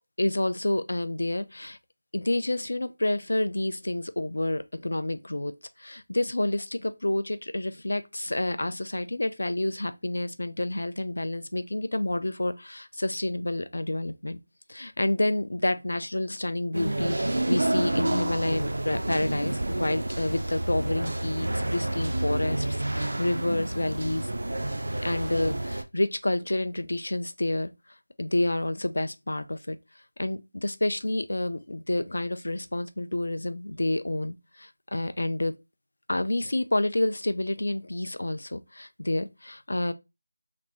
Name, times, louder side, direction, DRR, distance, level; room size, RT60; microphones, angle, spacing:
voice 1, 0.2-1.8 2.1-5.5 5.8-14.4 14.7-24.3 25.0-27.7 28.2-29.8 30.2-35.5 36.1-39.9, left 1 dB, 70° left, 0.4 m, -29 dB
sound 1, 16.7-25.8, right 1 dB, 70° right, 0.4 m, -29 dB
3.3 x 2.0 x 3.0 m
figure-of-eight pair, 175°, 0 cm